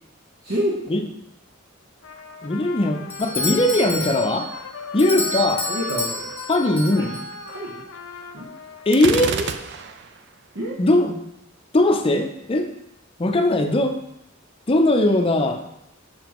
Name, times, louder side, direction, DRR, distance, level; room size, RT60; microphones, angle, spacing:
voice 1, 0.4-1.0 5.7-6.4 6.9-7.2 7.5-7.9 8.3-8.5 9.2-9.5 9.7-9.9 10.5-10.8, equal, 75° right, -3 dB, 1.0 m, -29 dB
Trumpet, 2.0-9.4, left 5 dB, 85° left, 0.6 m, -37 dB
voice 2, 2.4-4.5 4.9-5.7 6.5-7.1 8.9-9.3 10.8-11.2 11.7-12.7 13.2-14.0 14.7-15.6, left 1 dB, 30° left, 5 dB, 0.5 m, -19 dB
Doorbell, 3.1-7.6, left 1 dB, 10° left, 0.9 m, -30 dB
Gunshot gunfire, 8.9-10.2, right 6 dB, 60° right, 0.4 m, -28 dB
6.9 x 5.8 x 3.0 m, 0.84 s
head